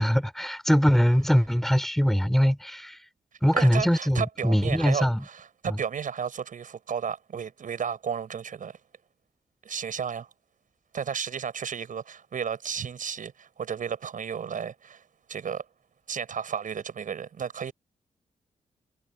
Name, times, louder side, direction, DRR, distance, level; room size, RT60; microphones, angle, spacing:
voice 1, 0.0-3.0 3.4-5.2 5.7-5.8, equal, ahead, 3.1 m, -22 dB
voice 2, 3.5-8.8 9.6-10.3 10.9-15.0 15.3-15.6 16.1-17.7, right 7 dB, 70° right, 7.0 m, -33 dB
cardioid pair, 65°, 14 cm